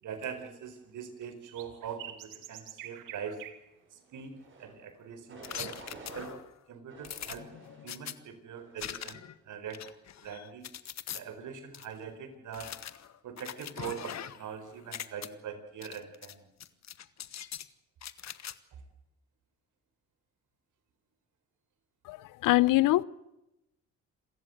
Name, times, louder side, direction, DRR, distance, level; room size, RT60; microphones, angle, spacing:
voice 1, 0.0-3.4 3.9-4.3 4.6-6.3 6.7-7.5 7.8-9.8 10.2-10.7 11.1-12.7 13.2-16.5 18.7-18.8, right 7 dB, 70° right, 4.6 m, -42 dB
sound 1, 1.2-3.7 4.2-4.3 5.6-5.7, right 12 dB, 90° right, 2.4 m, -46 dB
sound 2, 4.3-4.7 5.3-6.4 6.9-7.9 8.5-8.9, right 3 dB, 40° right, 7.4 m, -49 dB
sound 3, 5.4-6.5 7.0-8.1 8.8-9.3 9.7-11.2 11.7-11.9 12.5-14.5 14.8-15.3 15.8-16.3 16.6-17.7 18.0-18.5, left 10 dB, 55° left, 1.5 m, -42 dB
voice 2, 22.4-23.0, left 18 dB, 80° left, 0.8 m, -22 dB
28.0 x 15.0 x 8.0 m
cardioid pair, 85°, 32 cm